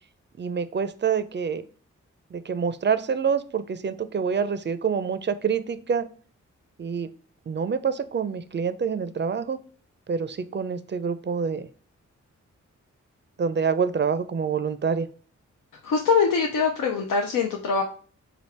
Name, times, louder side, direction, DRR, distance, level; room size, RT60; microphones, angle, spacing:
voice 1, 0.4-1.6 2.3-6.1 6.8-7.1 7.5-9.6 10.1-11.7 13.4-15.1, right 6 dB, 35° right, 12 dB, 0.4 m, -26 dB
voice 2, 15.7-17.8, left 5 dB, 80° left, 2 dB, 0.5 m, -23 dB
3.4 x 2.4 x 4.3 m, 0.44 s
supercardioid pair, 40°, 32 cm